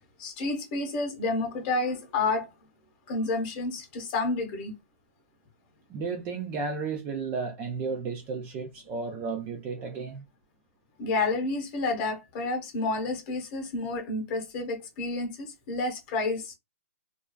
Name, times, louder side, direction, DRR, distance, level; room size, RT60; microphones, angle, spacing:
voice 1, 0.2-2.5 3.1-4.7 11.0-16.6, left 3 dB, 30° left, 1.0 m, -30 dB
voice 2, 5.9-10.2, right 4 dB, 20° right, 0.4 m, -33 dB
2.4 x 2.3 x 2.2 m
hypercardioid pair, 155°, 8 cm